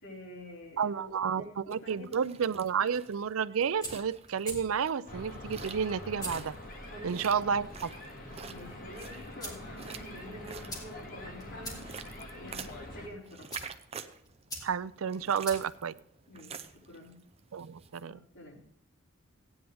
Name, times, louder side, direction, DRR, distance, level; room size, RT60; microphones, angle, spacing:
voice 1, 0.0-2.2 6.9-7.4 8.5-11.8 12.3-13.5 16.3-17.2 18.0-18.6, left 1 dB, 90° left, -6 dB, 5.4 m, -48 dB
voice 2, 0.8-6.5 7.0-7.9 14.6-15.9 17.5-18.2, right 7 dB, 90° right, 16 dB, 0.5 m, -31 dB
sound 1, 1.7-18.0, right 6 dB, 30° right, 0.6 m, -48 dB
sound 2, 3.6-16.8, equal, 20° left, 3.1 m, -48 dB
sound 3, 5.1-13.1, left 1 dB, 45° left, 1.7 m, -45 dB
16.5 x 9.5 x 3.5 m, 0.65 s
head